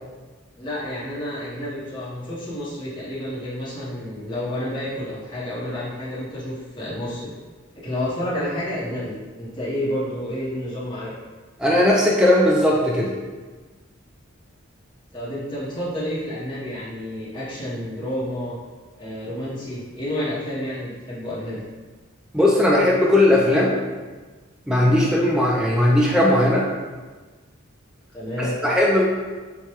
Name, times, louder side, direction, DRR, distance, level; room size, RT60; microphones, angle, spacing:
voice 1, 0.6-7.3 7.7-11.1 15.1-18.5 19.0-21.6 28.1-28.6, left 1 dB, 25° left, -10 dB, 0.8 m, -30 dB
voice 2, 11.6-13.1 22.3-23.7 24.7-26.7 28.4-29.0, left 1 dB, 5° right, -4 dB, 0.3 m, -18 dB
4.6 x 2.2 x 2.9 m, 1.3 s
head